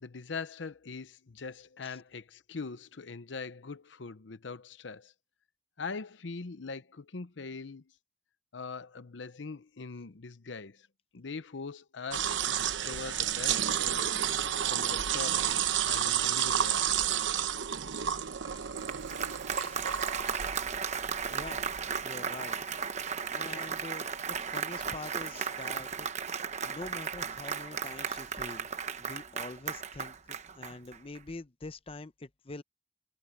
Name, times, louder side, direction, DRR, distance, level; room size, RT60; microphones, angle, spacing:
voice 1, 0.0-5.1 5.8-7.9 8.5-10.9 11.1-14.1 14.7-17.3, left 4 dB, 85° left, 0.8 m, -42 dB
sound 1, 12.1-22.0, right 9 dB, 85° right, 0.9 m, -31 dB
Applause, 18.6-31.2, right 6 dB, 40° right, 1.0 m, -36 dB
voice 2, 21.3-21.6 22.0-22.6 23.1-26.3 26.6-28.7 29.0-32.6, left 3 dB, 30° left, 0.7 m, -45 dB
head